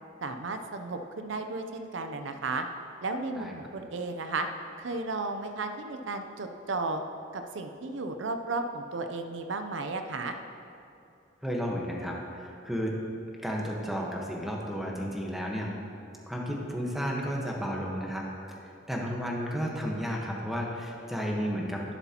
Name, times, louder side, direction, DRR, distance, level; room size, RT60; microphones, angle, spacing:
voice 1, 0.2-2.7 3.0-4.5 4.8-7.0 7.3-10.4, right 3 dB, 85° right, 6 dB, 0.6 m, -34 dB
voice 2, 11.4-12.9 13.4-15.7 16.3-21.8, equal, ahead, -2 dB, 1.2 m, -33 dB
11.0 x 11.0 x 2.9 m, 2.6 s
head